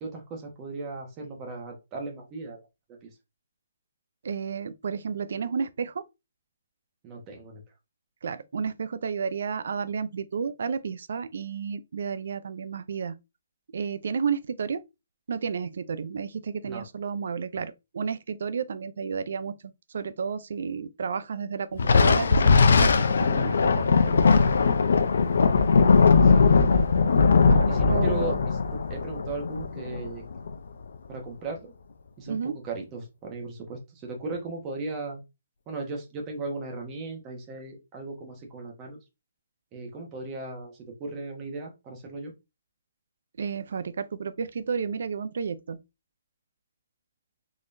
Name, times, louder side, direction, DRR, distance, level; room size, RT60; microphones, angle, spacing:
voice 1, 0.0-2.6 3.0-3.1 7.0-7.6 16.6-16.8 26.2-26.5 27.7-30.2 31.1-31.7 32.2-35.2 35.7-39.0 39.7-42.3, right 3 dB, 20° right, 1.1 m, -37 dB
voice 2, 4.2-6.0 8.2-13.1 13.7-14.8 15.3-19.5 19.9-22.9 23.2-24.4 27.5-28.4 32.3-32.5 43.4-45.8, right 6 dB, 60° right, 0.4 m, -32 dB
Thunder, 21.8-30.5, left 4 dB, 65° left, 0.5 m, -20 dB
3.8 x 2.9 x 2.6 m
hypercardioid pair, 160°, 0 cm